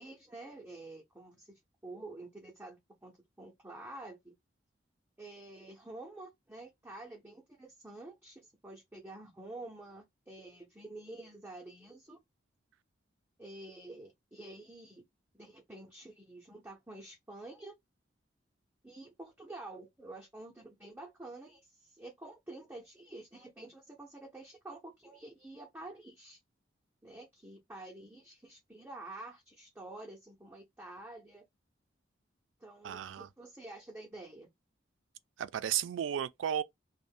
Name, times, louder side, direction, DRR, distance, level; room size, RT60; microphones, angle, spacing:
voice 1, 0.0-1.5 1.8-3.1 3.4-4.3 5.2-12.2 13.4-15.0 15.4-17.7 18.8-26.4 27.0-31.4 32.6-34.5, right 2 dB, 10° right, 0.5 m, -49 dB
voice 2, 32.8-33.3 35.4-36.6, right 9 dB, 80° right, 0.3 m, -34 dB
2.5 x 2.1 x 3.6 m
head